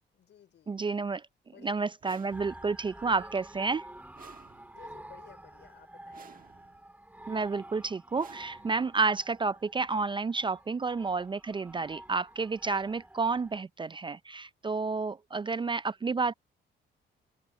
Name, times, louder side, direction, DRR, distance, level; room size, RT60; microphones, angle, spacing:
voice 1, 0.1-0.8 1.5-1.7 4.7-6.2, left 9 dB, 65° left, 5.0 m, -56 dB
voice 2, 0.7-1.2 1.6-3.8 7.3-16.3, right 4 dB, 25° right, 0.5 m, -30 dB
sound 1, 2.0-2.9 4.1-5.1 6.1-6.9 8.1-9.1, right 7 dB, 45° right, 1.4 m, -55 dB
sound 2, 2.3-13.6, right 1 dB, 10° right, 3.4 m, -49 dB
open air
cardioid pair, 90°, 20 cm